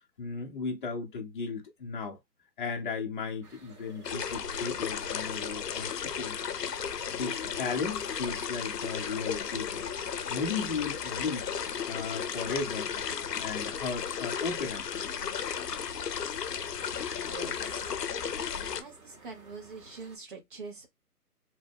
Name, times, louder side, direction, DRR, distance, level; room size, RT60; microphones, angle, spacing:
voice 1, 0.2-2.2 2.6-6.4 7.1-9.9 10.3-11.5 11.9-12.9 13.4-15.0, left 4 dB, 30° left, 0.7 m, -35 dB
sound 1, 3.4-20.2, right 3 dB, 60° right, 1.5 m, -56 dB
sound 2, 4.0-18.8, left 7 dB, 75° left, 0.7 m, -34 dB
voice 2, 17.1-18.1 18.8-20.9, right 4 dB, 30° right, 0.8 m, -45 dB
2.9 x 2.1 x 3.3 m
figure-of-eight pair, 145°, 49 cm